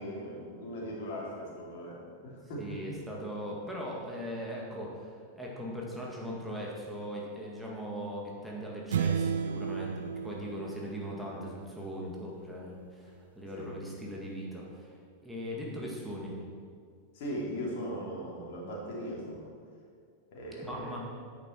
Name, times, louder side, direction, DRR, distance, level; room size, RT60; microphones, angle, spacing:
voice 1, 0.0-2.8 13.5-13.7 17.1-19.5 20.3-21.0, equal, 50° left, -4 dB, 3.0 m, -39 dB
voice 2, 2.6-9.9 10.2-15.0 15.2-16.4 20.6-21.0, equal, ahead, -4 dB, 2.0 m, -39 dB
sound 1, 8.9-11.6, right 7 dB, 65° right, 0.3 m, -33 dB
10.5 x 8.4 x 4.5 m, 2.1 s
figure-of-eight pair, 90°, 0 cm